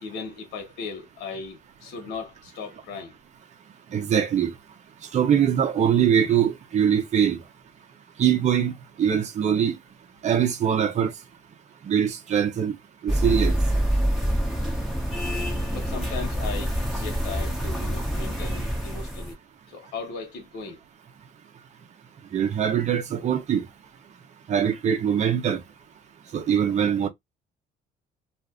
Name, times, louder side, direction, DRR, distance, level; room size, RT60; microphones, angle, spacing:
voice 1, 0.0-3.2 15.7-19.4 19.7-20.8, left 5 dB, 80° left, 1.0 m, -37 dB
voice 2, 3.9-4.5 5.1-7.4 8.2-8.7 9.0-9.8 10.2-11.1 11.9-12.8 13.0-13.6 22.3-23.6 24.5-25.6 26.3-27.1, right 8 dB, 45° right, 0.8 m, -22 dB
sound 1, 13.1-19.3, equal, ahead, 1.4 m, -26 dB
2.6 x 2.5 x 3.5 m
cardioid pair, 110°, 17 cm